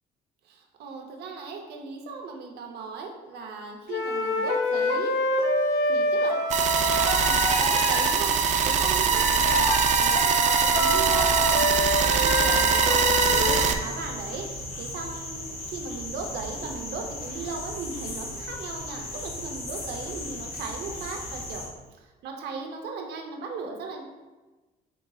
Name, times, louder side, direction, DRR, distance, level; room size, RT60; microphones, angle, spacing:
voice 1, 0.5-5.2 5.9-6.4 6.8-21.6 22.2-24.0, right 4 dB, 75° right, 2 dB, 0.8 m, -37 dB
sound 1, 3.9-8.2 9.1-13.7, left 2 dB, 85° left, 0.5 m, -26 dB
sound 2, 6.5-13.7, right 6 dB, 45° right, 0.4 m, -22 dB
sound 3, 13.1-21.7, left 1 dB, 65° left, 1.4 m, -37 dB
5.1 x 3.8 x 2.4 m, 1.2 s
cardioid pair, 110°, 17 cm